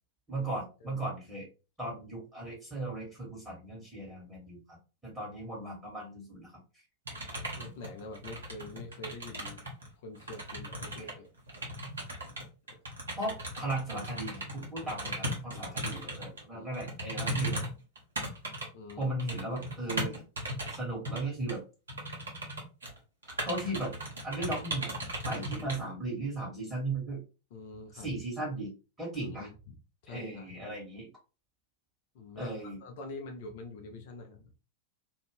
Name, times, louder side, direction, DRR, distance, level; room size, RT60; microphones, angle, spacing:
voice 1, 0.3-1.5 1.8-4.8 5.0-6.6 11.0-11.1 13.2-17.6 19.0-20.2 20.7-21.6 23.4-23.9 24.2-24.9 25.2-27.2 27.9-28.7 29.0-29.5 30.1-31.1 32.3-32.8, right 2 dB, 10° right, -5 dB, 1.5 m, -36 dB
sound 1, 7.0-9.9 10.1-16.4 16.7-20.8 21.0-21.2 21.5-21.6 21.9-23.0 23.2-25.8, right 1 dB, 70° right, 1.1 m, -37 dB
voice 2, 7.6-9.6 10.0-11.3 14.8-16.1 16.5-16.7 18.7-19.1 21.2-21.3 25.3-25.7 27.5-28.2 29.2-29.5 30.0-30.8 32.1-34.5, left 3 dB, 50° left, 3 dB, 0.6 m, -46 dB
2.7 x 2.5 x 3.3 m, 0.32 s
figure-of-eight pair, 90°, 0 cm